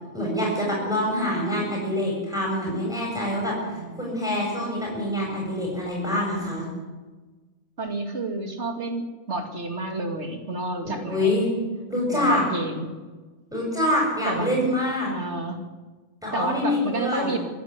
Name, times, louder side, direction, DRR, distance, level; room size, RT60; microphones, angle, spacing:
voice 1, 0.1-6.7 10.8-11.5 11.9-12.4 13.5-15.1 16.2-17.3, left 1 dB, ahead, -4 dB, 7.0 m, -25 dB
voice 2, 3.7-4.1 7.8-11.3 12.1-12.9 14.2-14.6 15.1-15.6 16.3-17.4, right 2 dB, 45° right, 4 dB, 2.8 m, -30 dB
25.5 x 11.0 x 9.7 m, 1.3 s
omnidirectional pair, 1.6 m